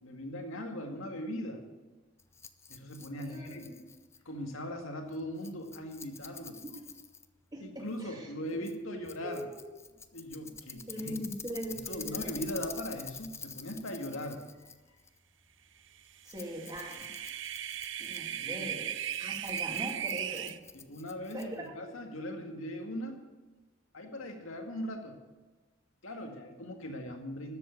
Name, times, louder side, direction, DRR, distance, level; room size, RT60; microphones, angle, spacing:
voice 1, 0.0-1.7 2.7-3.7 4.3-6.6 7.6-9.5 10.1-11.1 11.9-14.7 18.4-18.6 20.7-23.2 23.9-25.2 26.0-27.6, equal, 75° left, 3 dB, 2.1 m, -39 dB
Rattle, 2.2-21.8, left 6 dB, 15° left, 0.4 m, -48 dB
voice 2, 3.2-3.8 6.6-6.7 7.5-8.3 8.8-9.6 10.9-12.4 16.2-17.1 18.0-18.9 19.2-20.5 21.3-21.9, equal, 20° right, -1 dB, 2.6 m, -41 dB
sound 1, 16.3-20.6, right 10 dB, 60° right, 0.6 m, -37 dB
13.0 x 7.7 x 8.2 m, 1.2 s
head